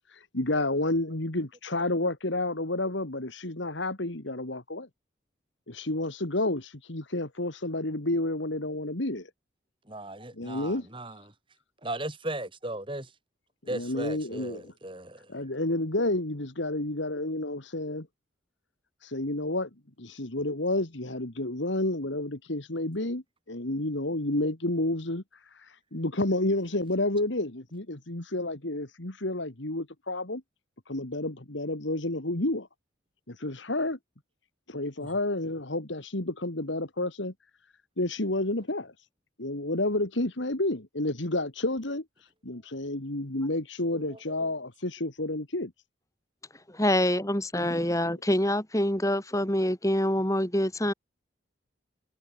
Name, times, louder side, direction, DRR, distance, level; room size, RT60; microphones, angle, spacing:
voice 1, 0.3-4.9 5.7-9.3 10.3-10.9 13.7-14.6 15.3-18.1 19.0-19.7 20.0-25.2 25.9-30.4 30.9-32.7 33.3-34.0 34.7-37.3 38.0-38.9 39.4-42.0 42.4-45.7 47.6-47.9, left 2 dB, 70° left, 2.4 m, -30 dB
voice 2, 9.9-11.2 11.8-13.1 13.7-15.3 35.0-35.2 43.9-44.3, right 1 dB, 25° right, 4.1 m, -37 dB
voice 3, 46.7-50.9, left 1 dB, 15° left, 3.5 m, -26 dB
head